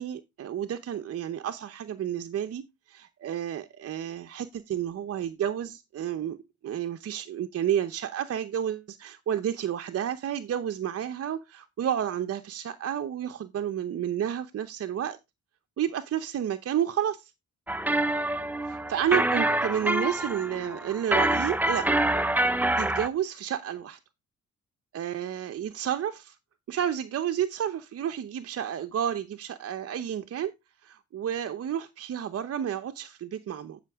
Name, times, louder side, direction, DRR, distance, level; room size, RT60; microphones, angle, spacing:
voice 1, 0.0-6.4 6.6-15.2 15.8-17.3 18.7-21.9 22.8-24.0 24.9-26.4 26.7-30.5 30.8-33.8, right 10 dB, 55° right, 0.8 m, -31 dB
sound 1, 17.7-23.1, right 1 dB, 5° right, 0.6 m, -26 dB
10.5 x 5.9 x 3.5 m
cardioid pair, 90°, 30 cm